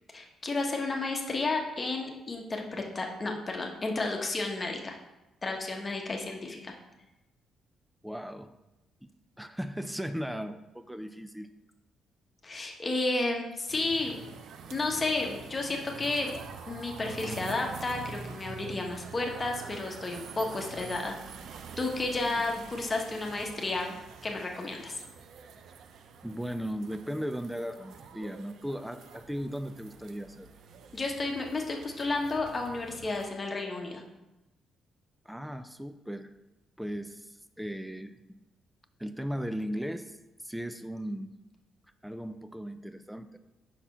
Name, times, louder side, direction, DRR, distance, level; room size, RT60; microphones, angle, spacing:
voice 1, 0.1-4.9 5.4-6.7 12.4-14.1 14.7-16.3 16.7-21.1 21.8-23.9 24.2-25.0 30.9-34.0, left 2 dB, 30° left, 1 dB, 1.0 m, -32 dB
voice 2, 8.0-8.5 9.4-11.5 22.4-22.7 26.2-30.5 35.3-36.3 36.8-38.4 39.0-40.2 40.4-41.4 42.0-43.4, equal, 5° right, 10 dB, 0.4 m, -37 dB
sound 1, 13.7-33.3, right 6 dB, 70° right, 0.5 m, -46 dB
5.7 x 4.1 x 5.5 m, 0.99 s
cardioid pair, 90°, 0 cm